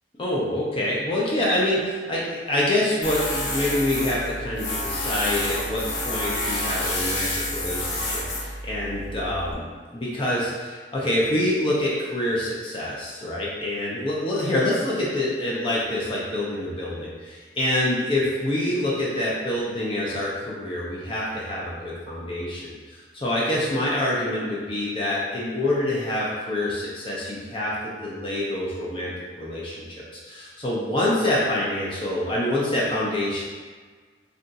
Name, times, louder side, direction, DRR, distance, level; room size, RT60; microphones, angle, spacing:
voice 1, 0.2-9.6 9.9-33.4, left 1 dB, 30° left, -6 dB, 0.6 m, -26 dB
Tools, 3.0-9.5, left 1 dB, 80° left, 0.6 m, -29 dB
2.5 x 2.3 x 3.9 m, 1.5 s
head